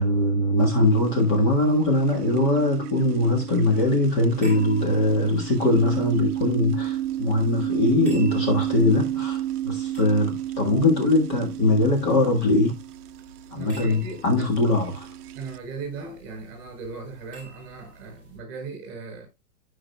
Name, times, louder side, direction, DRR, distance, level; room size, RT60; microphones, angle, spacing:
voice 1, 0.0-12.7 13.5-15.1, left 2 dB, 25° left, 1.6 m, -21 dB
sound 1, 0.6-15.6, right 12 dB, 70° right, 0.6 m, -32 dB
sound 2, 4.3-18.4, right 1 dB, 5° left, 6.0 m, -50 dB
voice 2, 13.5-14.2 14.6-14.7 15.3-19.3, right 4 dB, 25° right, 4.5 m, -37 dB
14.5 x 5.0 x 2.3 m
hypercardioid pair, 160°, 47 cm